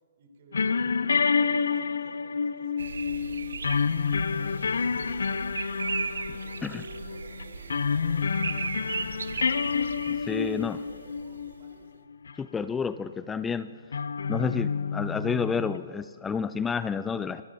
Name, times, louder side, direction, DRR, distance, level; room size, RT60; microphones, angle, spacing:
voice 1, 0.2-3.7 4.2-8.4 9.0-9.6 9.9-12.0, right 3 dB, 60° right, 2 dB, 3.7 m, -55 dB
sound 1, 0.5-11.7 12.1-12.3 13.9-15.8, left 5 dB, 75° left, 0.5 m, -29 dB
sound 2, 2.8-11.6, right 5 dB, 75° right, 0.7 m, -37 dB
voice 2, 10.3-10.8 12.4-13.7 14.3-17.4, left 6 dB, 10° left, 13 dB, 0.3 m, -30 dB
25.5 x 13.5 x 2.7 m, 2.1 s
hypercardioid pair, 130°, 0 cm